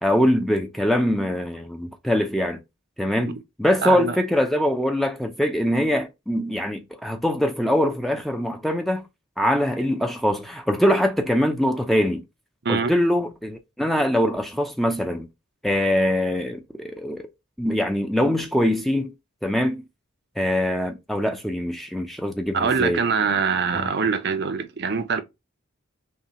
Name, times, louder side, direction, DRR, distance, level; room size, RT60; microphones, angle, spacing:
voice 1, 0.0-2.6 3.0-9.0 9.4-12.2 12.7-15.3 15.6-17.2 17.6-19.1 19.4-19.8 20.4-23.0 23.7-23.9, equal, ahead, 0.4 m, -23 dB
voice 2, 3.8-4.2 12.6-12.9 22.5-25.2, right 5 dB, 50° right, 0.6 m, -23 dB
5.5 x 2.3 x 2.8 m
head